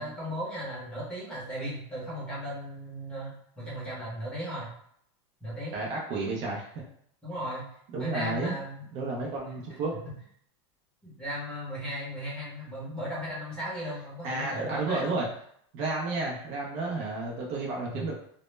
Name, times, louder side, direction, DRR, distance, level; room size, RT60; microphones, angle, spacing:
voice 1, 0.0-3.3 3.6-4.7 5.4-5.7 7.2-7.6 8.0-8.8 11.0-15.3 17.9-18.1, equal, 5° left, -8 dB, 0.7 m, -36 dB
voice 2, 5.7-6.8 7.9-8.5 8.9-10.0 14.2-15.3 15.7-18.1, right 3 dB, 30° right, -3 dB, 0.4 m, -31 dB
2.0 x 2.0 x 3.1 m, 0.66 s
supercardioid pair, 170°, 15 cm